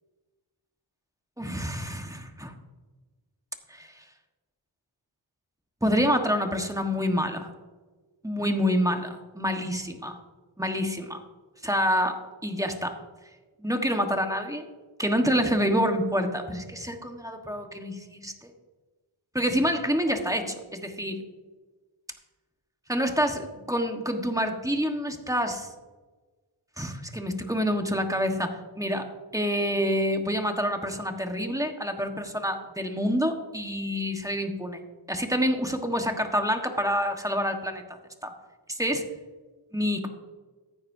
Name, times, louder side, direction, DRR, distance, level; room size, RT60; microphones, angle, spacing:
voice 1, 1.4-2.5 3.7-4.0 5.8-7.5 8.2-10.2 10.6-11.2 11.6-12.9 13.6-14.7 15.0-18.5 19.3-21.2 22.9-25.7 26.8-29.1 29.3-34.8 35.1-37.8 38.2-38.3 38.7-39.0 39.7-40.1, equal, 5° right, 4 dB, 1.4 m, -27 dB
15.0 x 9.3 x 2.7 m, 1.3 s
cardioid pair, 50°, 48 cm